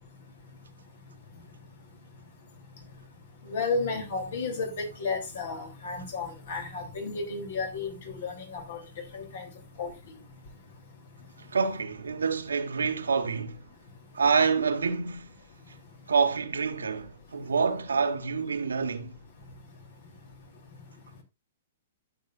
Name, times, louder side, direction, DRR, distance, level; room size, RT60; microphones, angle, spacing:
voice 1, 3.5-8.8 9.1-9.5 9.8-9.9, left 4 dB, 65° left, 3.1 m, -32 dB
voice 2, 11.5-13.6 14.1-15.3 16.1-19.1, right 5 dB, 80° right, 1.2 m, -27 dB
12.5 x 6.7 x 2.5 m
hypercardioid pair, 115°, 0 cm